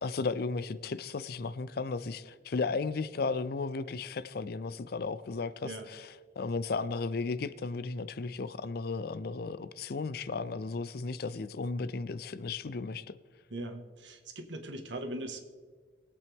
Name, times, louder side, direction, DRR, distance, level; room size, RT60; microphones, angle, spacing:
voice 1, 0.0-13.2, left 4 dB, 55° left, 0.5 m, -35 dB
voice 2, 13.5-15.4, right 1 dB, 80° right, 1.6 m, -40 dB
21.5 x 8.4 x 3.5 m
head